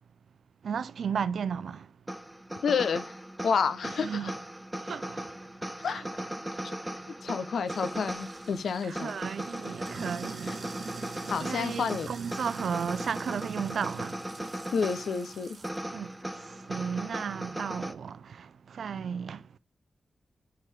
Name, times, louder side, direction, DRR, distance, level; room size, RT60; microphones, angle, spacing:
voice 1, 0.6-1.9 3.8-4.3 4.8-5.3 5.9-6.1 8.8-10.9 11.4-14.3 15.9-19.4, right 7 dB, 80° right, 0.3 m, -34 dB
sound 1, 2.1-17.9, right 1 dB, 15° right, 0.7 m, -38 dB
voice 2, 2.6-3.0 3.4-4.3 5.8-6.0 6.6-6.8 7.2-9.1 10.5-10.6 11.3-12.1 14.7-15.6, left 6 dB, 85° left, 0.6 m, -29 dB
Sink (filling or washing), 7.7-15.8, right 4 dB, 65° right, 1.1 m, -44 dB
9.1 x 3.8 x 3.3 m
cardioid pair, 60°, 0 cm